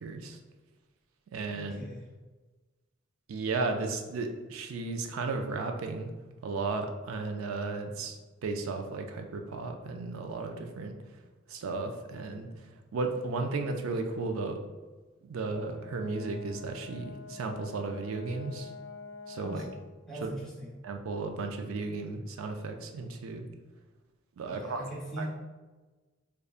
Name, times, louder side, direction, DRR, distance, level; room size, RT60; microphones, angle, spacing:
voice 1, 0.0-0.4 1.3-1.7 3.3-6.1 6.4-8.2 8.4-10.9 11.5-12.5 12.9-14.6 15.2-18.7 19.3-19.6 20.2-20.3 20.8-23.5 24.4-24.8 25.2-25.3, right 3 dB, 85° right, 5 dB, 0.4 m, -34 dB
voice 2, 1.5-2.0 19.4-19.6 20.1-20.7 24.4-25.3, right 1 dB, 5° left, -5 dB, 0.9 m, -40 dB
Brass instrument, 15.4-19.9, left 4 dB, 50° left, 0.6 m, -46 dB
5.0 x 2.1 x 2.4 m, 1.2 s
head